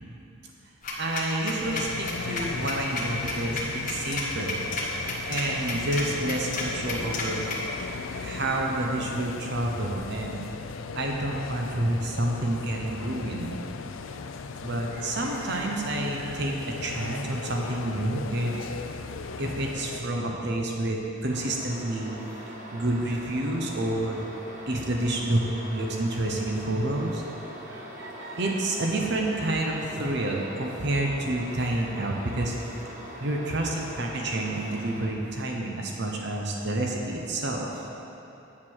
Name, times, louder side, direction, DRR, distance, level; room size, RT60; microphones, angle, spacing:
sound 1, 0.8-7.6, left 2 dB, 40° left, 1.3 m, -32 dB
voice 1, 1.0-4.7 5.3-10.4 11.0-13.5 14.6-18.5 19.4-24.2 24.7-25.4 25.7-27.2 27.7-32.5 33.2-37.8, right 1 dB, 55° right, 0 dB, 0.9 m, -29 dB
sound 2, 1.6-20.0, left 4 dB, 75° left, 0.4 m, -37 dB
sound 3, 21.3-35.1, equal, 35° right, 1.3 m, -42 dB
8.3 x 7.5 x 6.3 m, 3.0 s
head